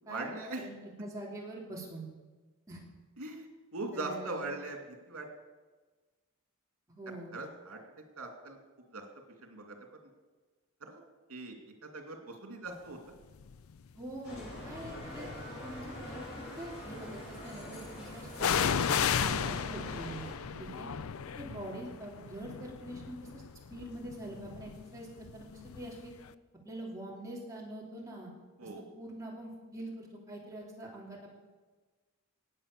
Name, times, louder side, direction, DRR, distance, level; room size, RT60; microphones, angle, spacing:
voice 1, 0.0-0.6 3.2-4.8 5.1-5.3 7.3-7.8 8.2-8.6 8.9-9.0 9.4-10.0 10.8-11.0 11.3-13.0 20.5-20.8 28.6-28.8, right 2 dB, 85° right, 3 dB, 2.8 m, -41 dB
voice 2, 0.6-2.1 2.7-2.8 3.9-4.4 6.9-7.3 13.9-15.3 15.6-20.3 20.6-20.9 21.4-23.4 23.7-25.1 25.3-26.1 26.6-28.3 28.6-31.3, right 1 dB, 15° right, -3 dB, 3.1 m, -44 dB
sound 1, 13.4-13.8 14.5-15.5 18.4-26.0 26.3-26.4, left 7 dB, 75° left, 0.5 m, -34 dB
Bicycle, 14.2-20.3, left 1 dB, 60° left, 6.1 m, -44 dB
18.5 x 7.8 x 6.9 m, 1.3 s
head